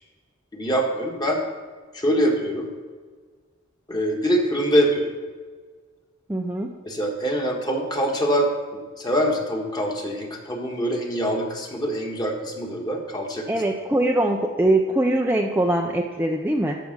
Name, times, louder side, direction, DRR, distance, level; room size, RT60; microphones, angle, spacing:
voice 1, 0.5-1.4 1.9-2.7 3.9-5.1 6.8-13.5, equal, 20° left, 1 dB, 1.6 m, -24 dB
voice 2, 6.3-6.8 13.5-16.8, right 1 dB, 10° right, 1 dB, 0.5 m, -22 dB
13.5 x 5.0 x 6.6 m, 1.5 s
head